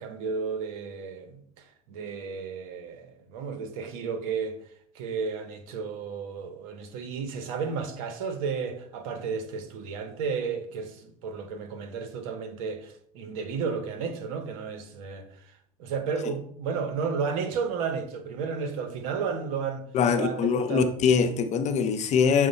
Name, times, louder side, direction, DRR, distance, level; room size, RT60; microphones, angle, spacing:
voice 1, 0.0-1.4 1.9-4.6 4.9-15.3 15.8-19.8 20.1-20.9, right 5 dB, 75° right, 0.8 m, -32 dB
voice 2, 19.9-22.5, left 6 dB, 40° left, 0.6 m, -23 dB
6.3 x 2.1 x 4.1 m
supercardioid pair, 100°, 18 cm